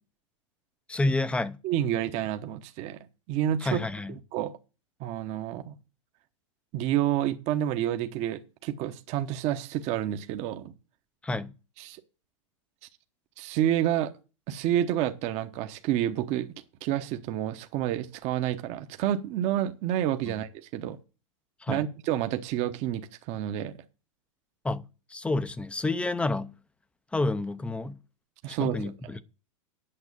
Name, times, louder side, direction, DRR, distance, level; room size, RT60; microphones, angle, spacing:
voice 1, 0.9-1.6 3.6-4.2 11.2-11.5 20.3-20.4 21.6-21.9 24.6-24.8 25.1-26.5 27.1-28.0 28.5-29.2, left 2 dB, 5° left, 0.6 m, -29 dB
voice 2, 1.6-3.0 3.3-3.8 4.3-4.5 5.0-5.8 6.7-10.7 11.8-12.0 13.4-14.1 14.5-16.5 16.8-21.0 21.7-23.8 28.4-28.9, right 11 dB, 40° right, 1.0 m, -29 dB
8.8 x 6.4 x 8.3 m
supercardioid pair, 135°, 17 cm